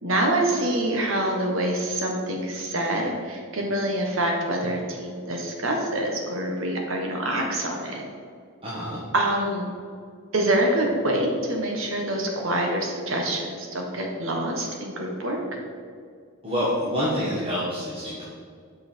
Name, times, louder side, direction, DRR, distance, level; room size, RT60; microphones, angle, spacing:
voice 1, 0.0-8.0 9.1-9.7 10.3-15.4, right 1 dB, 70° right, 1 dB, 1.4 m, -26 dB
voice 2, 8.6-9.0 16.4-18.2, equal, 25° right, -9 dB, 1.5 m, -27 dB
7.8 x 5.7 x 4.5 m, 2.2 s
head